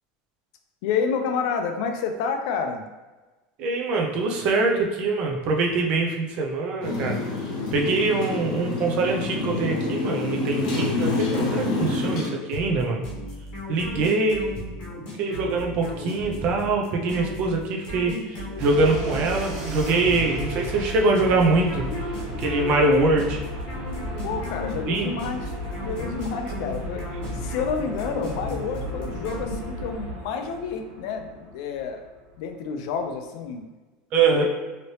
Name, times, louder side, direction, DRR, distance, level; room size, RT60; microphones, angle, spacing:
voice 1, 0.8-2.8 24.2-25.5 25.8-27.0 27.3-32.0 32.4-33.6 34.3-34.5, left 6 dB, 60° left, 5 dB, 0.4 m, -29 dB
voice 2, 3.6-7.2 7.7-13.0 13.7-14.5 15.2-21.9 22.4-23.4 24.9-25.1 34.1-34.5, right 3 dB, 40° right, 1 dB, 0.5 m, -23 dB
Motorcycle, 6.8-12.3, left 3 dB, 80° left, 0.9 m, -27 dB
sound 1, 12.5-30.0, left 1 dB, 40° left, 0.9 m, -36 dB
sound 2, 18.6-32.5, equal, 70° right, 1.3 m, -35 dB
3.1 x 2.8 x 2.8 m, 1.2 s
cardioid pair, 175°, 4 cm